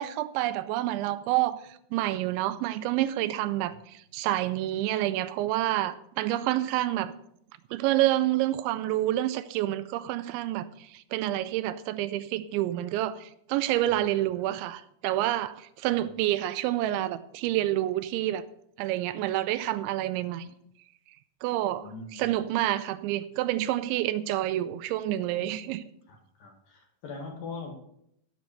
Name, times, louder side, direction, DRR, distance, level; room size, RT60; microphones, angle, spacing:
voice 1, 0.0-7.1 7.7-18.4 18.8-20.5 21.4-25.8, right 14 dB, 85° right, 2.9 m, -28 dB
voice 2, 13.9-14.2 21.8-22.3 26.1-27.7, left 4 dB, 60° left, 2.7 m, -42 dB
14.5 x 6.5 x 6.8 m
omnidirectional pair, 5.4 m